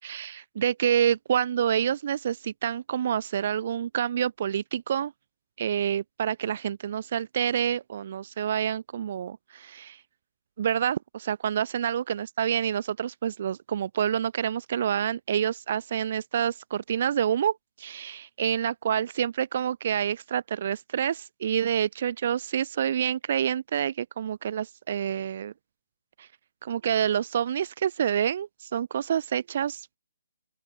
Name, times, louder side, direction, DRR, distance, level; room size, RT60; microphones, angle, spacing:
voice 1, 0.0-5.1 5.6-10.0 10.6-25.5 26.2-26.3 26.6-30.0, right 9 dB, 50° right, 4.6 m, -28 dB
open air
figure-of-eight pair, 140°, 0 cm